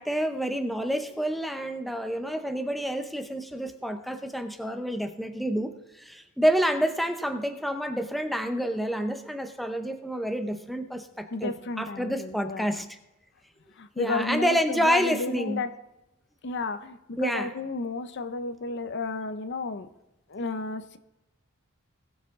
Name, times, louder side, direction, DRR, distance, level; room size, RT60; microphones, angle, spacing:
voice 1, 0.0-5.7 6.0-13.0 14.0-15.6 17.2-17.5, equal, ahead, 6 dB, 0.6 m, -28 dB
voice 2, 11.3-12.9 13.8-15.7 16.4-19.9 20.3-21.0, left 3 dB, 55° left, 11 dB, 0.6 m, -32 dB
19.5 x 7.1 x 3.6 m, 0.95 s
head